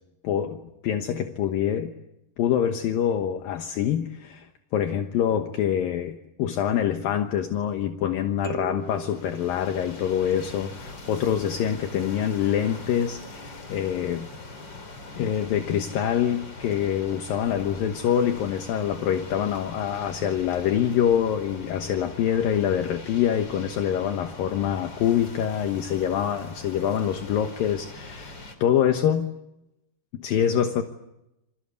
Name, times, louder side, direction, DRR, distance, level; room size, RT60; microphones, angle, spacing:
voice 1, 0.2-1.9 2.4-14.3 15.2-29.3 30.1-30.8, left 9 dB, 70° left, 6 dB, 2.8 m, -25 dB
sound 1, 8.4-10.3, right 5 dB, 40° right, 4.0 m, -39 dB
sound 2, 8.8-28.5, left 2 dB, 30° left, 4.0 m, -42 dB
28.5 x 23.5 x 8.2 m, 0.87 s
omnidirectional pair, 4.5 m